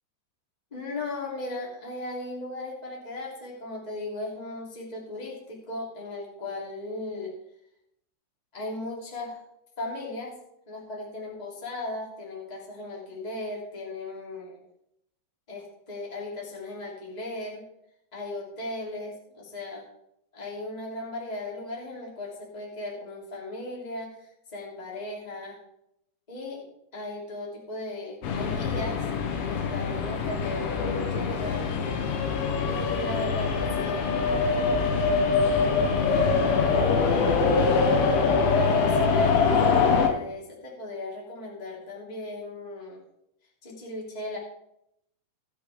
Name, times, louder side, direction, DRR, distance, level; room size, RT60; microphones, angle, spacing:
voice 1, 0.7-7.3 8.5-9.4 9.8-10.4 10.7-14.6 15.5-17.7 18.1-19.9 20.3-24.2 24.5-25.6 26.3-26.6 26.9-29.0 29.5-31.7 32.6-36.1 36.6-37.3 38.5-43.0 43.6-44.4, left 2 dB, 10° left, -4 dB, 2.4 m, -37 dB
sound 1, 28.2-40.1, left 4 dB, 80° left, 3.7 m, -24 dB
18.5 x 7.0 x 3.6 m, 0.79 s
omnidirectional pair, 5.5 m